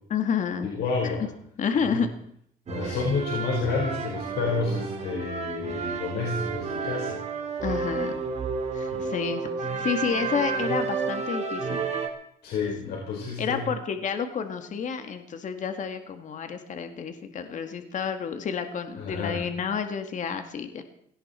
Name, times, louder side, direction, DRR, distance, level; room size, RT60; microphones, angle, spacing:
voice 1, 0.1-0.7 1.0-1.1 1.6-2.1 2.8-3.0 7.6-8.1 8.7-11.8 12.6-13.0 13.4-20.8, left 6 dB, 45° left, 7 dB, 1.9 m, -30 dB
voice 2, 0.7-1.3 1.8-2.0 2.7-7.2 8.9-9.0 12.4-13.6 19.0-19.4, left 4 dB, 70° left, -1 dB, 4.7 m, -30 dB
sound 1, 2.7-12.1, right 5 dB, 40° right, 3.2 m, -31 dB
18.0 x 17.5 x 4.4 m, 0.69 s
cardioid pair, 110°, 17 cm